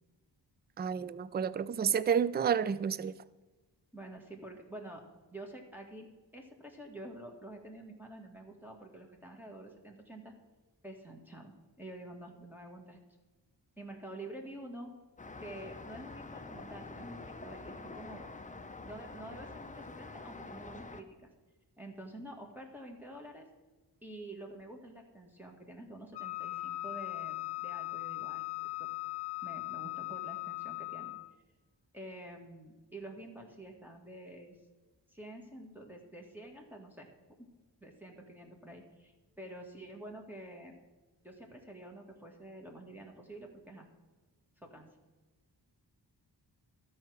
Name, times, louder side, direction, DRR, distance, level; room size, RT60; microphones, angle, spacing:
voice 1, 0.8-3.1, right 7 dB, 25° right, 0.3 m, -30 dB
voice 2, 3.9-5.0 5.3-10.3 10.8-13.0 13.8-14.9 15.4-18.3 18.8-21.3 21.8-23.5 24.0-28.9 29.4-31.1 31.9-34.6 35.1-37.1 37.4-37.5 37.8-40.7 41.2-43.9 44.6-44.9, right 1 dB, 5° right, 1.7 m, -48 dB
Traffic noise roadway noise, 15.2-21.0, left 3 dB, 20° left, 0.7 m, -46 dB
Wind instrument woodwind instrument, 26.1-31.3, left 22 dB, 65° left, 0.7 m, -39 dB
12.0 x 4.7 x 6.2 m
cardioid pair, 60°, 43 cm